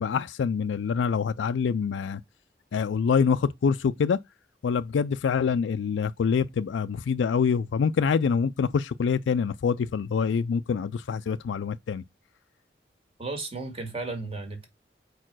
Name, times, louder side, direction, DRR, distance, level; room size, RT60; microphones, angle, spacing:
voice 1, 0.0-2.2 2.7-4.2 4.6-12.0, left 6 dB, 90° left, 0.4 m, -25 dB
voice 2, 13.2-14.7, right 3 dB, 30° right, 1.8 m, -34 dB
4.9 x 4.4 x 6.0 m
head